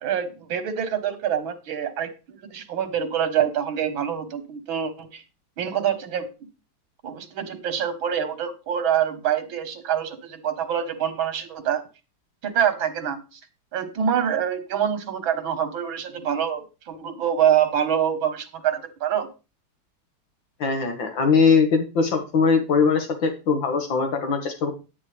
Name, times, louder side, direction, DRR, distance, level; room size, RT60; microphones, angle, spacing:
voice 1, 0.0-5.2 5.6-6.3 7.0-11.8 12.4-13.4 13.7-19.3, right 9 dB, 85° right, 9 dB, 2.1 m, -25 dB
voice 2, 20.6-24.7, left 5 dB, 70° left, 5 dB, 2.3 m, -21 dB
10.0 x 9.8 x 3.3 m, 0.30 s
omnidirectional pair, 2.1 m